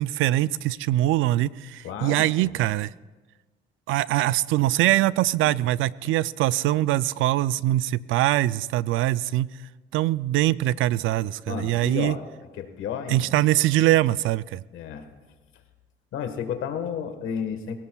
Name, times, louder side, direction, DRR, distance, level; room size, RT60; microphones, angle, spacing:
voice 1, 0.0-2.9 3.9-9.5 9.9-12.2 13.1-14.6, right 15 dB, 85° right, 19 dB, 0.4 m, -23 dB
voice 2, 1.8-2.5 11.5-12.2 12.6-13.3 14.7-15.1 16.1-17.8, left 7 dB, 90° left, 7 dB, 1.4 m, -32 dB
23.5 x 17.0 x 2.3 m, 1.3 s
cardioid pair, 90°, 20 cm